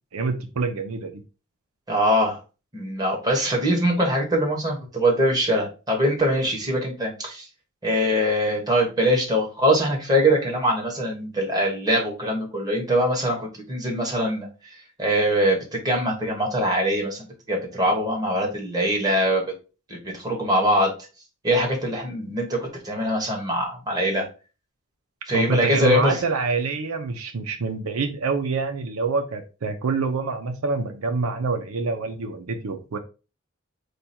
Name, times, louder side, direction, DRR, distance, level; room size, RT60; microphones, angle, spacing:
voice 1, 0.1-1.2 25.3-33.0, right 4 dB, 75° right, 6 dB, 0.6 m, -26 dB
voice 2, 1.9-2.4 2.7-7.5 7.8-19.4 19.9-20.9 21.4-24.3 25.3-26.2, equal, 15° right, -1 dB, 1.4 m, -23 dB
4.9 x 2.3 x 4.2 m, 0.32 s
head